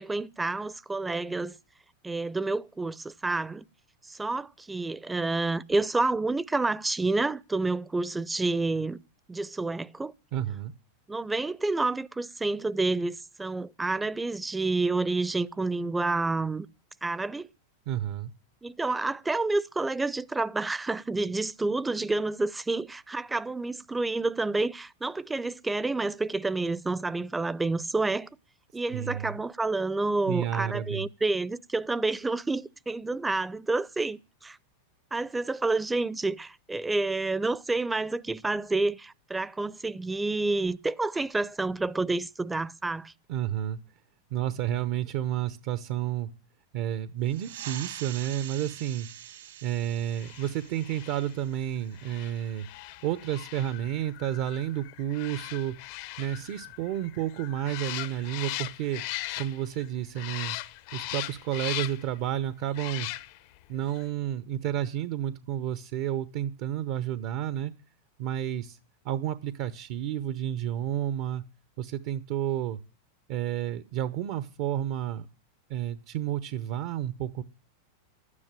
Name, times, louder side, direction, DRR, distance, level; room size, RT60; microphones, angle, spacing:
voice 1, 0.0-1.5 2.0-3.7 4.1-9.0 9.3-10.1 11.1-16.7 17.0-17.5 18.6-28.3 28.7-34.6 35.1-43.1, right 3 dB, 10° right, 0.6 m, -29 dB
voice 2, 10.3-10.7 17.9-18.3 28.9-29.3 30.3-31.0 43.3-43.8 44.3-46.3 46.7-49.1 49.6-52.7 53.0-55.8 56.2-59.0 59.4-60.6 60.9-63.1 63.7-67.7 68.2-68.8 69.0-71.4 71.8-72.8 73.3-75.3 75.7-77.4, right 11 dB, 55° right, 0.8 m, -31 dB
sound 1, 47.2-52.4, right 10 dB, 75° right, 2.5 m, -45 dB
sound 2, 50.1-59.9 60.1-62.2 62.7-63.6 63.9-64.0, left 17 dB, 60° left, 0.8 m, -39 dB
12.0 x 9.7 x 7.5 m
hypercardioid pair, 105°, 0 cm